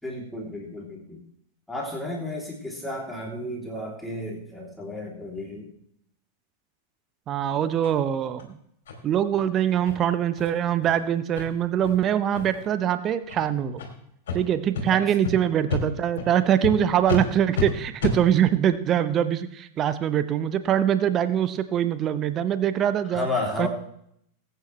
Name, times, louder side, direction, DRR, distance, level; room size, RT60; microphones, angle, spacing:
voice 1, 0.0-1.2 1.7-5.7 14.9-15.0 23.1-23.7, left 2 dB, 5° left, -2 dB, 3.2 m, -32 dB
voice 2, 7.3-8.6 9.0-13.8 14.3-23.3 23.6-23.7, right 10 dB, 30° right, 12 dB, 0.8 m, -23 dB
sound 1, 7.8-7.9 8.4-8.5 8.9-9.0 9.3-9.4 9.8-9.9 10.3-10.5 10.8-10.9 11.3-11.4 11.8-12.0 12.3-12.7 13.2-13.4 13.8-13.9 14.3-14.4 14.7-14.8 15.2-15.3 15.7-15.8 16.2-16.3 16.6-16.7 17.1-17.2 17.5-17.7 18.0-18.2, left 4 dB, 60° left, 3.1 m, -29 dB
20.5 x 9.1 x 3.3 m, 0.71 s
figure-of-eight pair, 90°, 0 cm